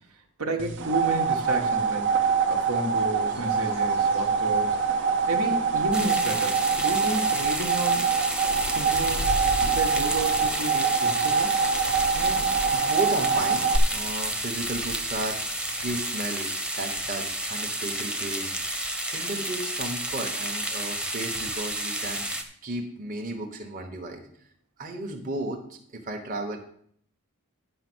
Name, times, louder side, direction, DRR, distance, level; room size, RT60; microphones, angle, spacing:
voice 1, 0.4-4.8 5.3-8.0 8.4-9.2 9.6-11.5, right 2 dB, 75° right, 2 dB, 1.4 m, -32 dB
sound 1, 0.6-13.8, right 5 dB, 55° right, 0.8 m, -25 dB
sound 2, 3.3-16.0, left 2 dB, 75° left, 0.7 m, -41 dB
sound 3, 5.9-22.4, right 1 dB, 5° right, 0.8 m, -31 dB
voice 2, 12.1-16.5 16.8-22.3 22.6-24.2 24.8-26.6, right 2 dB, 35° right, 2 dB, 1.2 m, -34 dB
10.0 x 5.5 x 6.2 m, 0.63 s
head